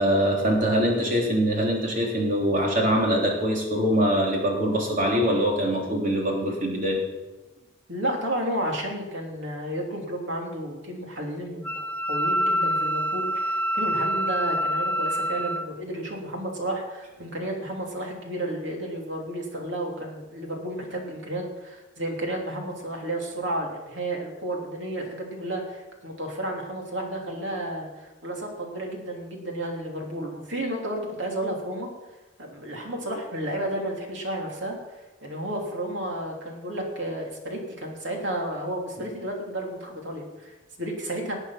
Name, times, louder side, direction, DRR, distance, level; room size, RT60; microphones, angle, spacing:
voice 1, 0.0-7.0, equal, 40° right, -1 dB, 3.4 m, -23 dB
voice 2, 7.9-31.9 32.4-41.3, right 1 dB, 60° right, 0 dB, 3.2 m, -32 dB
Wind instrument woodwind instrument, 11.6-15.7, equal, 10° left, 0.3 m, -26 dB
19.5 x 8.0 x 5.9 m, 1.1 s
head